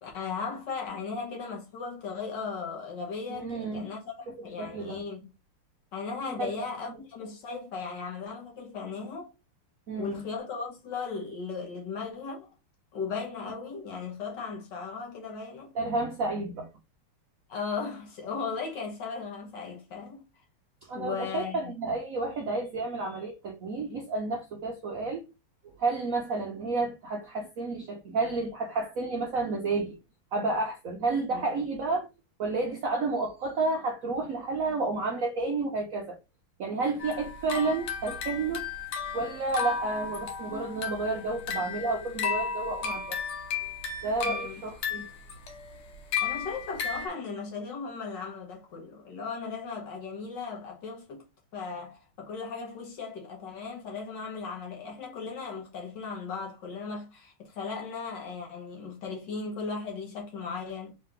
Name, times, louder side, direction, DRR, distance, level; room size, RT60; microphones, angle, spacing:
voice 1, 0.0-5.3 5.9-9.3 10.0-12.5 12.9-15.7 17.5-20.2 21.0-21.7 31.3-31.5 44.2-44.6 46.2-51.2 51.5-60.9, left 5 dB, 60° left, 1.6 m, -37 dB
voice 2, 3.3-3.9 4.4-5.0 6.4-6.6 9.9-10.2 15.7-16.7 20.8-25.2 25.6-30.0 30.3-32.1 32.4-36.2 36.6-38.6 39.1-43.2 43.6-43.7 44.0-45.1, right 3 dB, 80° right, 0.7 m, -31 dB
sound 1, 37.0-47.1, left 6 dB, 75° left, 1.8 m, -34 dB
3.8 x 3.4 x 3.3 m
omnidirectional pair, 2.4 m